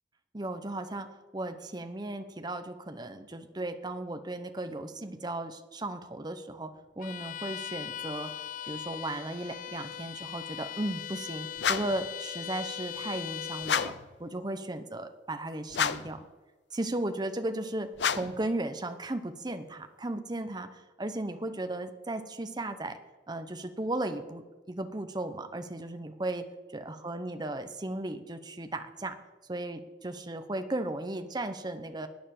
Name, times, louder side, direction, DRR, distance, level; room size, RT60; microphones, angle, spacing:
voice 1, 0.3-1.1 1.3-6.7 7.0-8.3 8.7-13.9 14.2-16.2 16.7-23.0 23.3-26.5 26.7-29.2 29.5-32.1, right 1 dB, 25° right, 9 dB, 0.9 m, -35 dB
Bowed string instrument, 7.0-14.0, left 10 dB, 45° left, 0.3 m, -40 dB
sound 1, 11.6-12.1 13.6-14.1 15.7-16.2 18.0-18.5, left 7 dB, 80° left, 0.6 m, -30 dB
11.5 x 9.3 x 7.7 m, 1.3 s
head